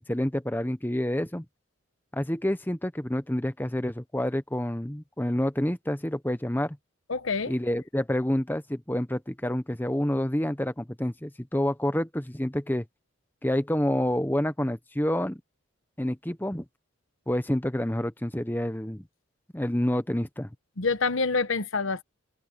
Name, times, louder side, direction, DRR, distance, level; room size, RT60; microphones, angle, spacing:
voice 1, 0.0-1.4 2.1-6.8 7.5-12.8 13.4-15.4 16.0-16.6 17.3-19.0 19.5-20.5, left 1 dB, 10° left, 1.0 m, -28 dB
voice 2, 7.1-7.5 20.8-22.0, left 4 dB, 75° left, 1.1 m, -26 dB
head